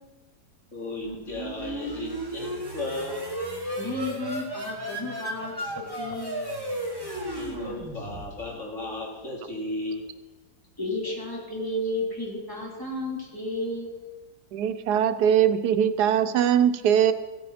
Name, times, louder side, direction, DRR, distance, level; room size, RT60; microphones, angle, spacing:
voice 1, 0.7-3.2 7.4-10.0 10.8-11.1, left 2 dB, 45° left, -4 dB, 3.4 m, -35 dB
sound 1, 1.0-8.6, right 1 dB, 15° right, 1.8 m, -34 dB
voice 2, 3.8-6.5 10.8-13.9, left 1 dB, 10° left, -4 dB, 3.4 m, -32 dB
voice 3, 14.5-17.1, right 9 dB, 85° right, 11 dB, 1.2 m, -21 dB
16.0 x 8.5 x 5.7 m, 1.2 s
omnidirectional pair, 1.7 m